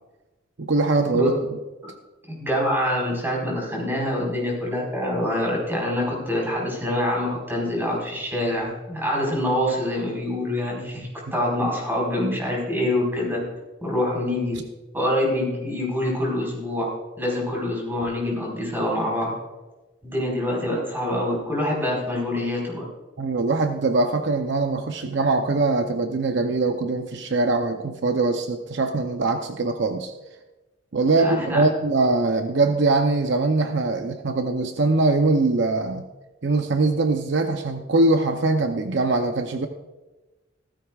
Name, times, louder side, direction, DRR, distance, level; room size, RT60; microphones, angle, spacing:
voice 1, 0.6-1.4 23.2-30.1 30.9-36.1 36.4-39.7, right 3 dB, 60° right, 6 dB, 0.7 m, -22 dB
voice 2, 2.3-13.4 13.8-14.6 14.9-16.9 17.2-19.3 20.0-22.9 31.2-31.6, left 1 dB, 10° right, -2 dB, 4.5 m, -25 dB
16.0 x 14.0 x 2.4 m, 1.1 s
head